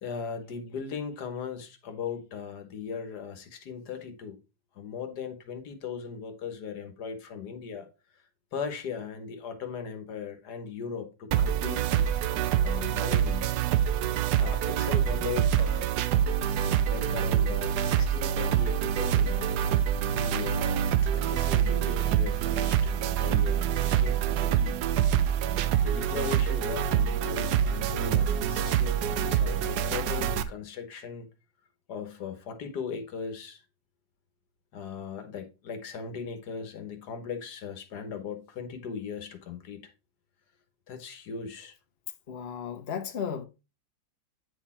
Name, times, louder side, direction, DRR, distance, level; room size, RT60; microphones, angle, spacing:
voice 1, 0.0-4.4 4.8-7.9 8.5-12.1 12.3-13.6 14.4-15.9 16.8-19.5 20.0-20.8 21.1-24.8 25.8-31.3 31.9-33.6 34.7-39.9 40.9-41.8, left 6 dB, 80° left, 1.7 m, -38 dB
sound 1, 11.3-30.4, right 9 dB, 80° right, 1.2 m, -26 dB
voice 2, 42.3-43.5, left 7 dB, 50° left, 0.9 m, -34 dB
9.0 x 4.2 x 4.3 m
omnidirectional pair, 1.7 m